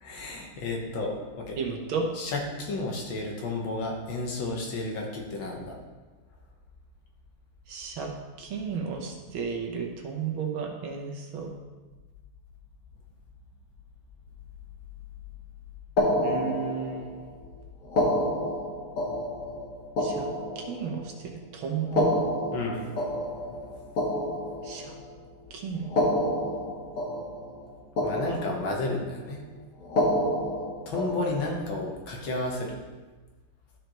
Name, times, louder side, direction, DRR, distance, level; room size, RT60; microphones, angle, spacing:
voice 1, 0.0-1.6 2.1-5.8 22.5-23.6 28.0-29.4 30.9-32.8, left 2 dB, 65° left, 0 dB, 1.8 m, -32 dB
voice 2, 1.6-2.1 7.7-8.1 8.4-11.5 16.2-17.1 20.0-20.3 20.6-22.1 24.6-24.9 25.5-25.9, right 5 dB, 70° right, 2 dB, 1.7 m, -33 dB
sound 1, 16.0-17.2 17.8-21.2 21.8-25.1 25.8-27.7 28.0-29.0 29.8-31.7, left 1 dB, 45° left, 1.2 m, -29 dB
12.5 x 5.0 x 3.0 m, 1.3 s
omnidirectional pair, 2.4 m